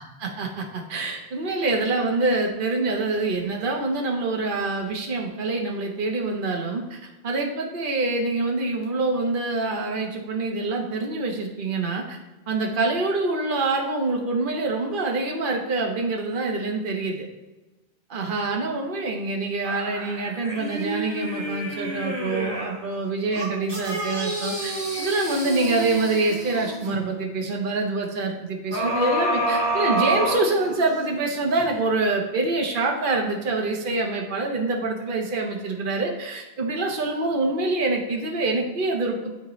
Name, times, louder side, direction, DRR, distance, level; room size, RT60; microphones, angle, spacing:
voice 1, 0.0-12.2 12.5-17.3 18.1-39.3, right 3 dB, 50° right, 1 dB, 1.2 m, -26 dB
sound 1, 19.6-22.8 23.3-27.0 28.7-31.0 31.6-31.7, right 1 dB, 20° right, 1.9 m, -28 dB
12.0 x 4.4 x 3.1 m, 1.1 s
omnidirectional pair, 1.2 m